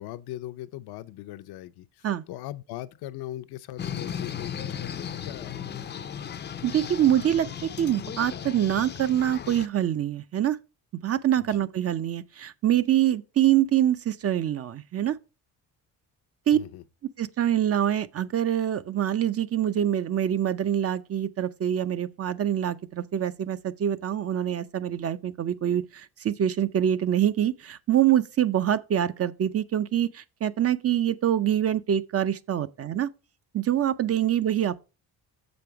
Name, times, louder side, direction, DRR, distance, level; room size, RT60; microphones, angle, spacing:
voice 1, 0.0-6.6 11.4-11.7 16.5-16.8, left 14 dB, 75° left, 0.6 m, -40 dB
sound 1, 3.8-9.7, left 8 dB, 30° left, 0.5 m, -36 dB
voice 2, 6.6-10.6 11.0-15.2 16.5-16.6 17.2-33.1 33.5-34.8, right 11 dB, 40° right, 0.5 m, -25 dB
6.8 x 5.2 x 4.5 m
cardioid pair, 105°, 39 cm